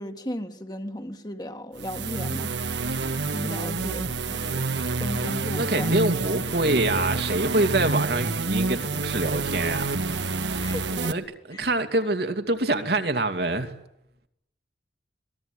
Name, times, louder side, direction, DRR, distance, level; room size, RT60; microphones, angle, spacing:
voice 1, 0.0-2.5 3.3-6.1 10.6-11.2 11.5-11.7, equal, 25° left, 1.9 m, -36 dB
sound 1, 1.8-11.1, right 3 dB, 85° right, 1.6 m, -28 dB
voice 2, 5.6-9.9 10.3-10.7 11.1-13.7, right 2 dB, 60° right, 2.4 m, -26 dB
26.5 x 20.0 x 9.8 m
head